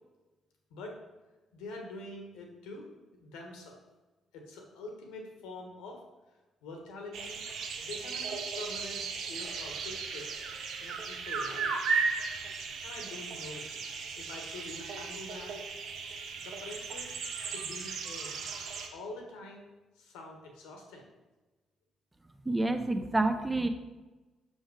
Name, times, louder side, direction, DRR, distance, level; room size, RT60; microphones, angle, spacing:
voice 1, 1.5-2.8 3.1-3.8 4.3-6.0 6.6-7.4 7.8-9.0 9.3-10.3 10.8-12.0 12.8-13.7 14.2-15.5 16.4-17.1 17.5-18.4 18.9-19.6 20.0-21.1, left 2 dB, 70° left, 2 dB, 1.3 m, -45 dB
sound 1, 7.1-18.9, right 5 dB, 60° right, 0.9 m, -36 dB
voice 2, 22.5-23.7, right 2 dB, 15° right, 7 dB, 0.7 m, -28 dB
6.2 x 5.6 x 4.8 m, 1.2 s
figure-of-eight pair, 40°, 0 cm